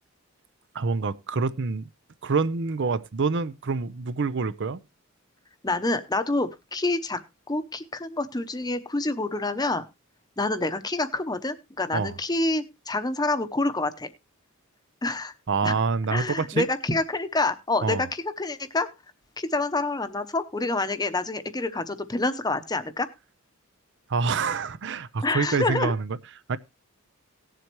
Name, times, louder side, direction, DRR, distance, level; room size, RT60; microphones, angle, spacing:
voice 1, 0.7-1.9 2.2-4.8 11.9-12.1 15.5-16.6 17.8-18.0 24.1-26.2 26.5-26.6, right 4 dB, 55° right, 0.6 m, -26 dB
voice 2, 5.6-7.2 7.5-9.8 10.4-14.1 15.0-15.3 15.6-15.7 16.1-18.9 19.4-23.1 25.2-25.9, left 2 dB, 20° left, 0.8 m, -27 dB
18.0 x 7.6 x 3.0 m
head